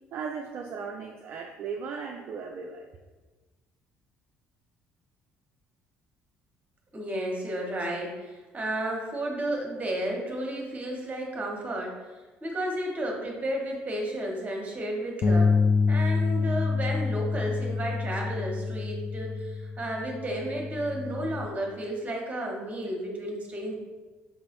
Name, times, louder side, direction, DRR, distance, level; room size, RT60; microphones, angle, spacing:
voice 1, 0.1-2.9, right 5 dB, 45° right, 2 dB, 0.4 m, -36 dB
voice 2, 6.9-11.9 12.4-15.5 15.9-23.7, right 1 dB, 25° right, 0 dB, 1.1 m, -32 dB
Bass guitar, 15.2-21.5, left 4 dB, 35° left, 0.5 m, -27 dB
5.2 x 2.9 x 2.8 m, 1.2 s
figure-of-eight pair, 50°, 6 cm